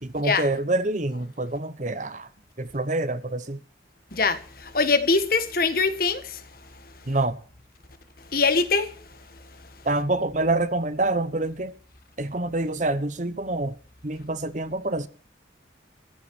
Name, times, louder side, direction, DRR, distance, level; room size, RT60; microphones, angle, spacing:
voice 1, 0.0-2.3 2.6-3.6 7.1-7.4 9.8-11.7 12.2-13.7 14.0-15.1, right 2 dB, 40° right, 1.0 m, -26 dB
voice 2, 4.1-6.4 8.3-8.9, left 4 dB, 50° left, 1.5 m, -23 dB
14.5 x 12.0 x 6.2 m
head